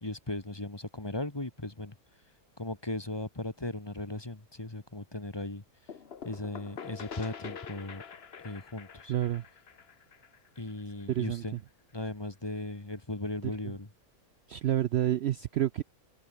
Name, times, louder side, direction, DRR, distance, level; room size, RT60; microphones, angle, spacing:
voice 1, 0.0-1.9 2.6-5.6 6.2-8.0 8.4-9.1 10.6-11.6 11.9-13.9, left 2 dB, 15° left, 1.7 m, -37 dB
sound 1, 5.9-11.5, left 6 dB, 45° left, 1.3 m, -46 dB
voice 2, 9.1-9.4 11.1-11.6 14.5-15.8, right 12 dB, 70° right, 0.6 m, -29 dB
open air
omnidirectional pair, 1.6 m